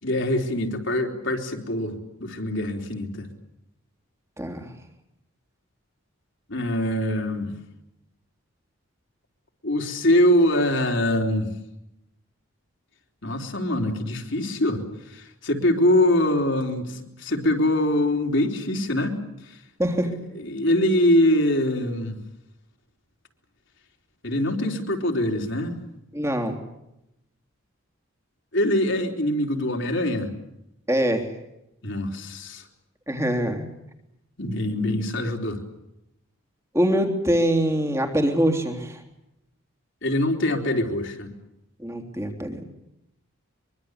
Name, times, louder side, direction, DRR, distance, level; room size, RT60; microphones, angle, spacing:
voice 1, 0.0-3.3 6.5-7.6 9.6-11.5 13.2-14.8 15.1-19.1 20.4-22.2 24.2-25.8 28.5-30.3 31.8-32.6 34.4-35.6 40.0-41.3, left 1 dB, 55° left, 3 dB, 3.9 m, -23 dB
voice 2, 4.4-4.7 19.8-20.1 26.1-26.6 30.9-31.3 33.1-33.7 36.7-39.0 41.8-42.7, equal, 15° right, 4 dB, 3.3 m, -24 dB
24.0 x 24.0 x 8.2 m, 0.85 s
head